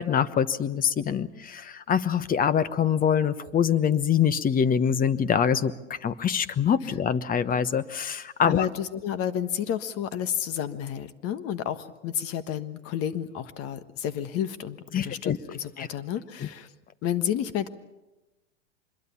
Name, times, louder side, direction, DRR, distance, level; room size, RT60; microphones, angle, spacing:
voice 1, 0.0-8.7 14.9-15.4 15.8-15.9, left 8 dB, 25° left, 15 dB, 1.1 m, -24 dB
voice 2, 8.5-16.7 17.0-17.7, left 9 dB, 40° left, 12 dB, 1.5 m, -31 dB
25.0 x 22.0 x 7.2 m, 1.0 s
hypercardioid pair, 105°, 35 cm